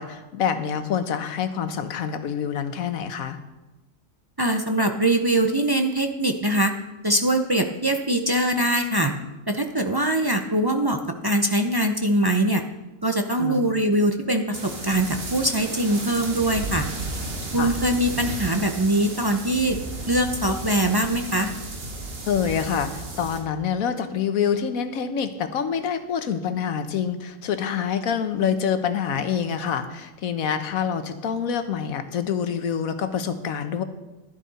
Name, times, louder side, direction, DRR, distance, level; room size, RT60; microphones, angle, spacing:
voice 1, 0.0-3.4 13.4-13.7 17.6-17.7 22.3-33.8, left 7 dB, 80° left, 9 dB, 1.3 m, -26 dB
voice 2, 4.4-6.7 7.0-9.1 9.5-12.6 13.0-16.8 17.5-19.8 20.1-21.5, right 1 dB, 30° right, 5 dB, 0.4 m, -22 dB
sound 1, 14.5-23.4, right 2 dB, 45° right, 1.7 m, -33 dB
11.5 x 11.5 x 4.1 m, 1.0 s
omnidirectional pair, 1.5 m